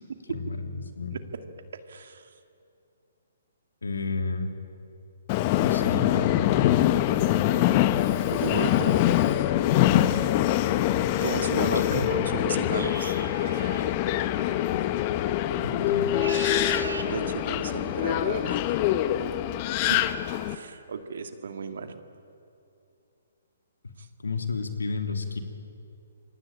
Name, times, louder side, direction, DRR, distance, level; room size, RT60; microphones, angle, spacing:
voice 1, 0.3-1.2 3.8-4.5 5.6-6.8 11.7-12.1 15.6-16.1 24.2-25.4, left 3 dB, 85° left, 5 dB, 3.2 m, -31 dB
voice 2, 1.9-2.3 8.3-9.1 11.2-13.2 17.0-18.6 19.9-20.0 20.5-22.0, right 5 dB, 65° right, 7 dB, 2.3 m, -34 dB
Subway metro underground, 5.3-20.5, left 12 dB, 35° left, 1.2 m, -24 dB
sound 1, 12.7-13.9 16.0-17.1, right 4 dB, 85° right, 2.4 m, -38 dB
27.5 x 23.0 x 9.0 m, 2.7 s
hypercardioid pair, 140°, 0 cm